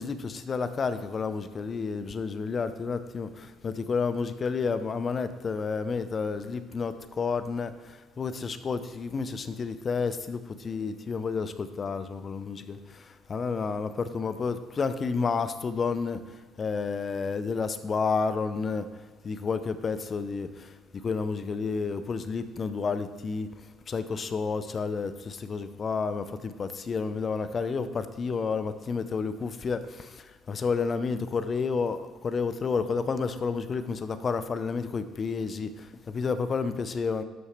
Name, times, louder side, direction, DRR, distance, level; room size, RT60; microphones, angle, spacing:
voice 1, 0.0-3.3 3.6-7.7 8.2-12.8 13.3-16.2 16.6-18.9 19.2-20.5 21.0-23.5 23.9-29.8 30.5-35.7 36.1-37.2, left 5 dB, 35° left, 12 dB, 0.6 m, -30 dB
12.5 x 6.3 x 3.1 m, 1.4 s
figure-of-eight pair, 55°, 0 cm